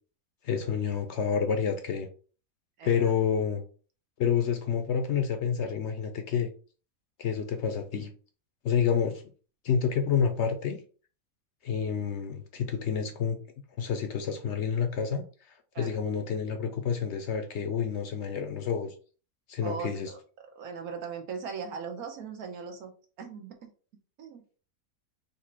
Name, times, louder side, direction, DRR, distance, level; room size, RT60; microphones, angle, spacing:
voice 1, 0.4-2.1 2.8-3.6 4.2-6.5 7.2-8.1 8.6-9.2 9.6-10.8 11.6-13.4 13.8-15.2 15.8-18.9 19.5-20.1, left 7 dB, 65° left, 0.8 m, -28 dB
voice 2, 2.8-3.1 15.7-15.9 19.6-20.2 20.5-22.9 23.2-23.7 24.2-24.4, right 6 dB, 85° right, 1.4 m, -39 dB
4.2 x 2.6 x 4.3 m
omnidirectional pair, 1.5 m